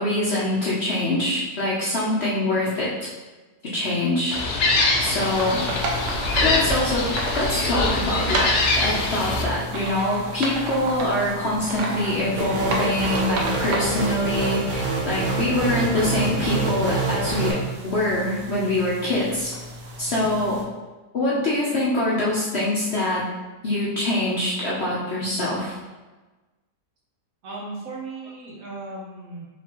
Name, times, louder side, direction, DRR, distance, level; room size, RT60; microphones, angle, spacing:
voice 1, 0.0-3.1 3.6-4.4 5.0-5.6 6.4-19.5 20.0-20.6 21.1-23.3 23.6-25.8, left 1 dB, 50° left, -7 dB, 0.8 m, -24 dB
Gull seagull, 4.3-9.4, left 2 dB, 85° left, 1.3 m, -23 dB
sound 1, 5.2-20.6, right 1 dB, 85° right, 1.3 m, -32 dB
sound 2, 12.4-17.5, right 3 dB, 45° right, 0.7 m, -26 dB
voice 2, 20.0-20.3 27.4-29.5, right 3 dB, 60° right, -4 dB, 1.3 m, -37 dB
4.7 x 3.4 x 2.9 m, 1.2 s
omnidirectional pair, 1.8 m